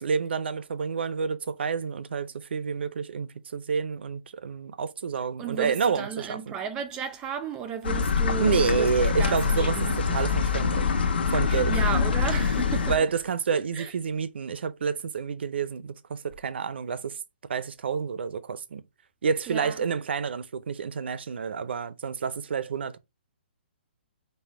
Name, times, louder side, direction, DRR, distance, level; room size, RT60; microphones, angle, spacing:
voice 1, 0.0-6.5 8.4-10.9 11.3-11.7 12.9-17.2 17.5-18.8 19.2-23.0, right 6 dB, 70° right, 0.5 m, -29 dB
voice 2, 5.4-8.9 9.2-10.0 11.5-12.9 13.5-13.9 19.5-19.8, right 7 dB, 10° right, 0.3 m, -34 dB
sound 1, 7.8-13.0, left 5 dB, 65° left, 1.1 m, -25 dB
5.4 x 2.1 x 4.3 m
hypercardioid pair, 170°, 6 cm